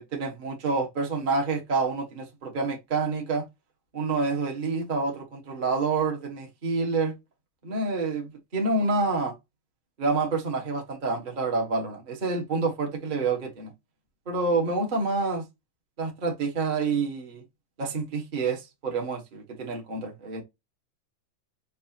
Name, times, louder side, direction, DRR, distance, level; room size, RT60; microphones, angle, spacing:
voice 1, 0.0-3.4 3.9-7.1 7.6-9.3 10.0-13.7 14.3-15.4 16.0-17.4 17.8-20.4, right 3 dB, 35° right, 0.7 m, -28 dB
6.4 x 2.8 x 2.9 m
omnidirectional pair, 3.6 m